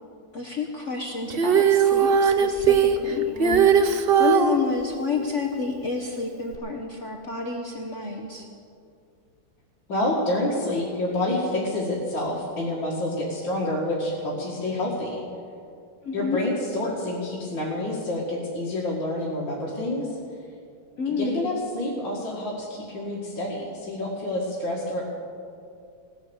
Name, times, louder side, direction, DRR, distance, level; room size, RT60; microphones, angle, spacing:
voice 1, 0.3-8.5 16.0-16.4 21.0-21.6, left 4 dB, 45° left, 1 dB, 1.2 m, -30 dB
Female singing, 1.3-4.6 6.5-6.6, right 7 dB, 60° right, 0.6 m, -19 dB
voice 2, 9.9-15.2 16.1-20.2 21.1-25.0, left 1 dB, 65° left, -6 dB, 2.8 m, -28 dB
18.0 x 11.0 x 7.1 m, 2.4 s
omnidirectional pair, 2.2 m